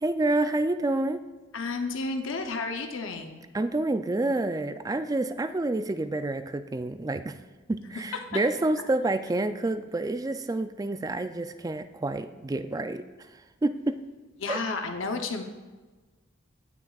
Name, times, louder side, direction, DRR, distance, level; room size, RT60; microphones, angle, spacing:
voice 1, 0.0-1.2 3.5-7.4 7.7-13.0 13.6-14.0 14.5-14.6, right 2 dB, 20° right, 10 dB, 0.3 m, -28 dB
voice 2, 1.5-3.4 14.4-15.4, left 3 dB, 80° left, 5 dB, 0.7 m, -31 dB
17.0 x 6.1 x 2.4 m, 1.3 s
head